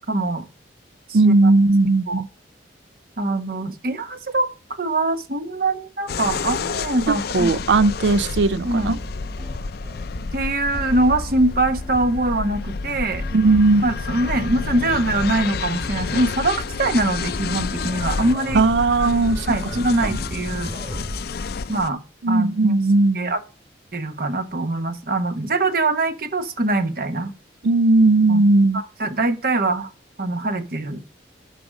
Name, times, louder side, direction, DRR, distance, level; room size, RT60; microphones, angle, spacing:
voice 1, 0.1-0.5 1.1-1.5 2.1-2.2 3.2-7.7 8.6-9.0 10.3-13.2 13.8-18.6 19.5-20.7 21.7-22.0 22.3-22.8 23.1-23.4 23.9-27.3 28.3-28.4 28.7-29.9 30.2-31.0, right 2 dB, 55° right, 1.1 m, -23 dB
voice 2, 1.1-2.3 7.1-9.0 13.3-13.8 18.5-19.5 20.0-20.2 22.2-23.3 27.6-28.8, right 3 dB, 75° right, 0.5 m, -17 dB
sound 1, 6.1-21.9, left 5 dB, 60° left, 0.4 m, -30 dB
sound 2, 8.4-21.2, equal, 25° right, 3.3 m, -36 dB
11.0 x 5.0 x 6.3 m
head